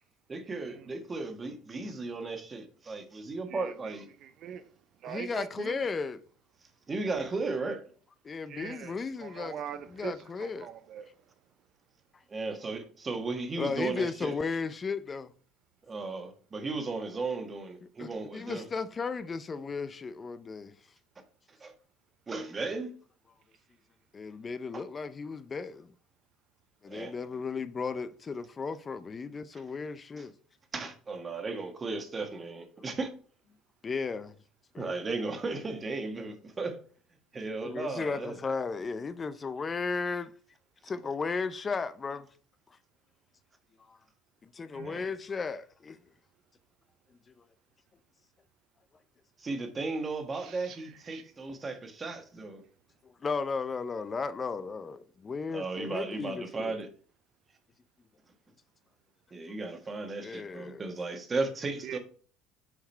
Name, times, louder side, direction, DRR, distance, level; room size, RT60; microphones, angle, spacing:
voice 1, 0.3-4.1 6.9-7.9 12.3-14.4 15.9-18.7 21.6-21.7 22.3-22.9 24.7-24.8 26.9-27.1 29.5-29.6 30.7-33.1 34.8-36.8 37.3-38.3 44.8-45.0 49.4-52.6 55.5-56.9 59.3-62.0, right 3 dB, 30° right, 1.5 m, -35 dB
voice 2, 3.5-3.9 4.2-4.6 5.0-5.7 8.5-8.9 9.2-10.1 10.4-11.1 44.7-45.0 50.3-50.8 51.1-51.2 61.8-62.0, right 9 dB, 55° right, 0.5 m, -42 dB
voice 3, 5.0-6.2 8.2-9.6 9.9-10.7 13.6-15.3 18.0-20.7 24.1-25.9 26.8-30.3 33.8-34.3 34.7-34.9 37.6-40.3 40.8-42.3 43.9-44.0 44.4-46.0 53.0-56.8 60.2-60.8, left 4 dB, 30° left, 0.5 m, -35 dB
7.2 x 3.8 x 4.4 m
supercardioid pair, 85°, 0 cm